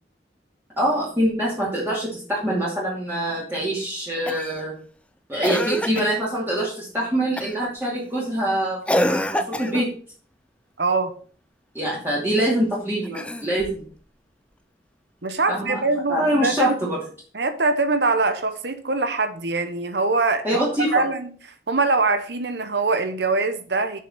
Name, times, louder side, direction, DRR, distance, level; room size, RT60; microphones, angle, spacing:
voice 1, 0.8-4.7 5.3-9.9 11.7-13.8 15.5-15.8 16.1-17.0 20.4-20.9, right 1 dB, 10° right, -7 dB, 2.5 m, -24 dB
Cough, 4.3-4.6 5.4-6.2 7.4-7.7 8.9-9.9 13.0-13.8 15.3-15.4, left 1 dB, 5° left, 0.4 m, -26 dB
voice 2, 10.8-11.1 15.2-16.9 17.3-20.6 20.9-21.3 21.7-24.0, right 3 dB, 70° right, 9 dB, 1.1 m, -23 dB
6.8 x 5.9 x 5.9 m, 0.43 s
head